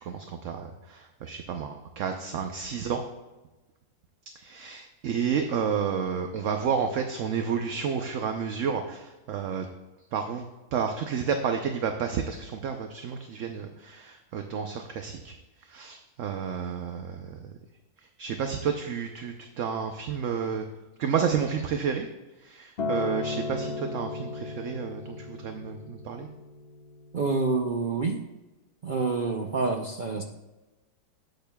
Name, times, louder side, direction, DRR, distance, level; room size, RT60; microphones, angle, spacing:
voice 1, 0.0-3.0 4.4-9.7 10.1-10.4 10.7-15.4 15.7-17.5 18.2-20.7 21.0-22.1 22.4-26.3, right 6 dB, 60° right, 5 dB, 0.9 m, -31 dB
Acoustic guitar, 22.8-27.1 27.9-28.0, left 3 dB, 40° left, 1.2 m, -35 dB
voice 2, 27.1-28.2 28.8-30.2, right 3 dB, 75° right, 3 dB, 0.4 m, -27 dB
13.0 x 8.9 x 2.2 m, 1.1 s
omnidirectional pair, 1.7 m